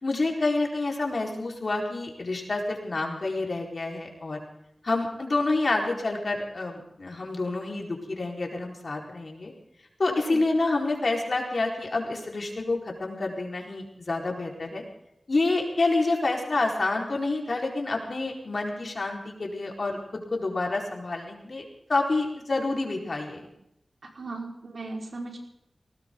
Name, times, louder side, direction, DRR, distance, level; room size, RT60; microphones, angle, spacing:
voice 1, 0.0-4.4 4.8-9.5 10.0-14.8 15.3-23.5, left 2 dB, 60° left, 0 dB, 4.5 m, -28 dB
voice 2, 10.1-10.4 24.1-25.4, right 3 dB, 65° right, 0 dB, 5.0 m, -37 dB
19.5 x 19.0 x 3.9 m, 0.79 s
wide cardioid pair, 70°, 0 cm